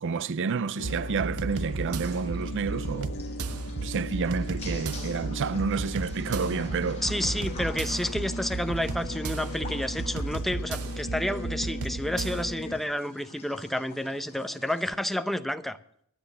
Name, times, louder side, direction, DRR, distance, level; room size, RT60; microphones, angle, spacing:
voice 1, 0.0-3.1 3.8-7.0, right 5 dB, 55° right, 0.5 m, -29 dB
sound 1, 0.8-12.8, left 1 dB, 50° left, 1.4 m, -39 dB
sound 2, 0.8-12.5, right 3 dB, 80° right, 0.9 m, -34 dB
sound 3, 1.4-14.9, left 3 dB, 30° left, 4.6 m, -48 dB
voice 2, 7.0-15.8, left 1 dB, ahead, 0.7 m, -30 dB
15.5 x 10.5 x 6.8 m
head